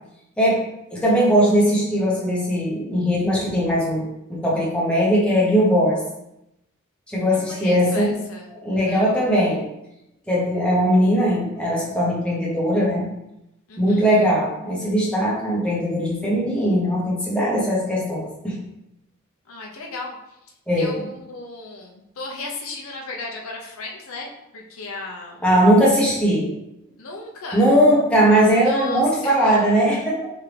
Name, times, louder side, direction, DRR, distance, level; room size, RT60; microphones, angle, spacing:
voice 1, 0.9-4.0 4.3-6.0 7.1-8.1 8.5-9.7 10.3-13.1 13.8-18.6 20.7-21.0 25.4-26.5 27.5-30.2, equal, 5° left, -5 dB, 0.9 m, -19 dB
voice 2, 7.3-9.3 13.7-14.1 19.5-20.2 20.8-25.4 27.0-27.7 28.6-29.9, left 3 dB, 85° left, 0 dB, 0.7 m, -35 dB
3.6 x 3.4 x 3.3 m, 0.86 s
head